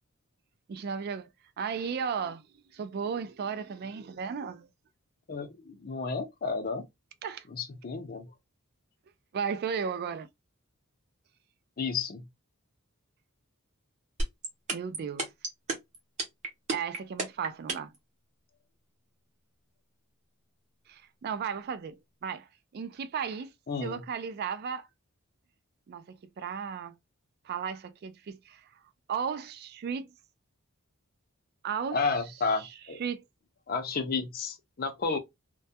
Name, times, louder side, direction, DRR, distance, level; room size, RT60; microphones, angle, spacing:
voice 1, 0.7-1.3 1.6-2.5 2.7-4.7 7.2-7.4 9.3-10.3 14.7-15.3 16.7-17.9 20.9-22.5 22.7-23.5 23.8-24.9 25.9-26.0 26.4-27.0 27.4-28.7 29.1-30.1 31.6-32.0 32.6-32.7 33.0-33.2, right 6 dB, 50° right, 0.3 m, -35 dB
voice 2, 5.3-6.9 7.5-8.3 11.8-12.2 23.7-24.0 31.9-33.0 33.7-35.2, left 4 dB, 45° left, 0.5 m, -32 dB
sound 1, 14.2-18.0, right 3 dB, 35° right, 0.7 m, -30 dB
2.2 x 2.2 x 2.6 m
head